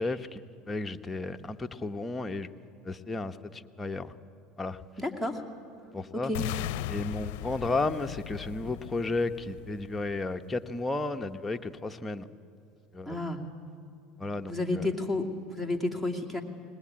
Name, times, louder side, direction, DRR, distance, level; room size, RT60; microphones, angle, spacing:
voice 1, 0.0-2.5 2.8-4.1 4.6-4.8 5.9-6.3 6.9-12.3 12.9-13.2 14.2-14.9, left 2 dB, 15° left, 6 dB, 1.0 m, -33 dB
voice 2, 5.0-5.4 6.1-6.5 13.1-13.4 14.5-16.4, left 2 dB, 10° right, 5 dB, 2.6 m, -31 dB
sound 1, 6.3-10.4, left 13 dB, 75° left, 0.6 m, -37 dB
20.5 x 20.0 x 8.8 m, 2.5 s
supercardioid pair, 100°, 0 cm